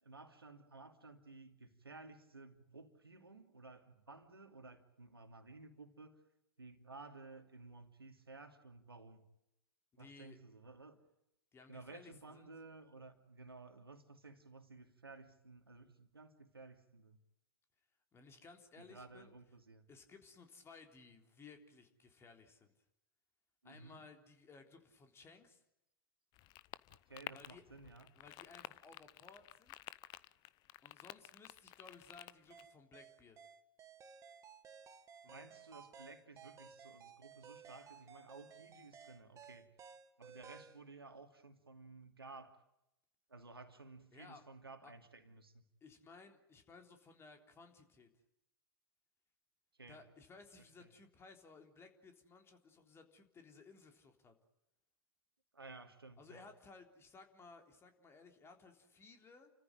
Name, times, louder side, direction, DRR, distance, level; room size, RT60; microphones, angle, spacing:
voice 1, 0.0-6.2 6.6-9.2 10.0-11.0 11.7-17.2 18.8-19.9 23.6-24.0 27.1-28.1 35.2-39.7 40.2-42.6 43.3-45.5 49.8-50.0 50.8-50.9 55.5-56.4, right 3 dB, 90° right, 2.7 m, -55 dB
voice 2, 9.9-10.4 11.5-12.5 18.1-19.3 19.9-22.7 23.6-25.6 27.3-27.6 28.2-29.8 30.8-33.4 35.2-35.4 44.1-44.4 44.8-44.9 45.8-48.1 49.9-54.3 56.2-59.5, left 4 dB, 20° left, 3.6 m, -59 dB
sound 1, 26.3-32.6, left 17 dB, 35° left, 0.8 m, -52 dB
sound 2, 32.5-40.8, right 6 dB, 25° right, 1.9 m, -57 dB
30.0 x 14.5 x 9.1 m
figure-of-eight pair, 100°, 12 cm